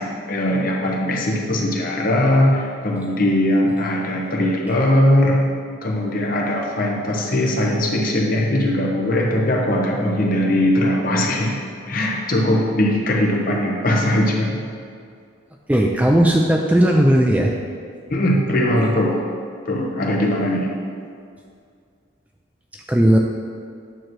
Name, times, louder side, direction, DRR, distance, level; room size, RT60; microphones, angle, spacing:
voice 1, 0.0-5.5 5.8-11.6 11.9-14.6 18.1-19.2 19.7-20.7, left 1 dB, 45° left, -1 dB, 0.9 m, -20 dB
voice 2, 15.7-17.5 22.9-23.2, right 1 dB, 5° right, 0 dB, 0.3 m, -16 dB
9.1 x 3.0 x 6.1 m, 2.2 s
head